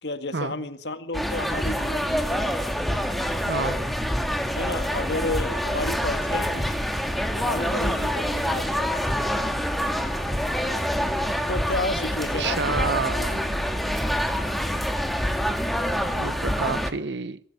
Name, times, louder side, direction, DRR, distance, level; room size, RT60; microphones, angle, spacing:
voice 1, 0.0-2.5 4.6-6.7 7.3-8.9 11.5-13.1 13.5-13.7, left 2 dB, 75° left, 2.0 m, -32 dB
sound 1, 1.1-16.9, equal, ahead, 2.0 m, -26 dB
voice 2, 3.5-3.9 12.4-13.5 16.2-17.4, right 4 dB, 85° right, 1.0 m, -29 dB
24.5 x 14.5 x 9.9 m
head